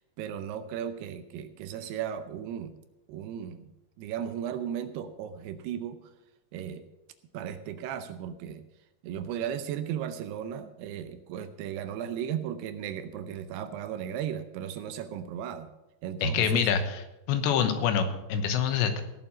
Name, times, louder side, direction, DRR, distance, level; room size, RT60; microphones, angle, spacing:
voice 1, 0.0-2.7 3.1-3.7 4.0-6.1 6.5-6.9 7.3-8.7 9.0-15.7 16.0-16.7, right 9 dB, 80° right, 10 dB, 2.6 m, -36 dB
voice 2, 16.2-16.8 17.3-19.0, left 7 dB, 85° left, 8 dB, 3.4 m, -25 dB
16.5 x 7.3 x 6.2 m, 0.97 s
omnidirectional pair, 5.0 m